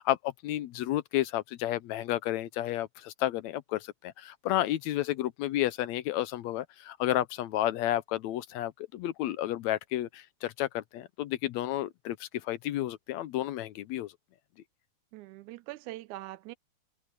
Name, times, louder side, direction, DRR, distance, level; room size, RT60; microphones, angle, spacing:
voice 1, 0.0-14.1, left 14 dB, 80° left, 1.9 m, -31 dB
voice 2, 15.1-16.6, right 17 dB, 85° right, 2.1 m, -42 dB
omnidirectional pair, 3.4 m